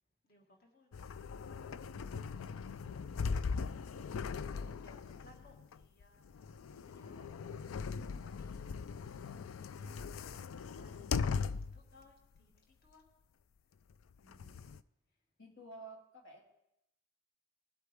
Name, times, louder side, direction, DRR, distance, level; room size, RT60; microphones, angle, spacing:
voice 1, 0.2-1.2 4.3-6.3 6.7-7.4 7.7-8.6 9.0-10.1 10.7-13.0, left 2 dB, 50° left, 1 dB, 1.9 m, -65 dB
sound 1, 0.9-11.9 12.4-12.5 13.9-14.8, left 5 dB, 90° left, 0.4 m, -40 dB
voice 2, 2.8-3.2 4.5-4.7 14.2-14.6 15.4-16.5, right 2 dB, 65° left, 0 dB, 2.1 m, -54 dB
20.5 x 8.3 x 3.5 m, 0.85 s
head